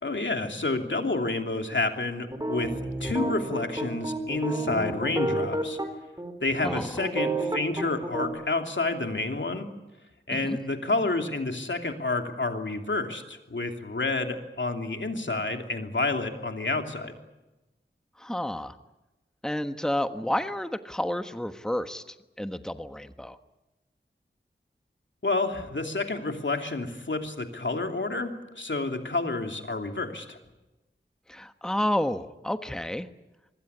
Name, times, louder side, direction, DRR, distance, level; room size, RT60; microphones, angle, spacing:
voice 1, 0.0-5.8 6.4-9.7 10.3-17.2 25.2-30.4, left 3 dB, 70° left, 5 dB, 2.9 m, -29 dB
sound 1, 2.3-5.9 6.2-6.3 6.7-8.3, right 2 dB, 20° right, 4.4 m, -30 dB
voice 2, 18.2-18.8 19.4-23.4 31.3-33.1, left 1 dB, 5° left, 9 dB, 1.3 m, -30 dB
25.0 x 21.0 x 9.8 m, 1.1 s
wide cardioid pair, 60°, 20 cm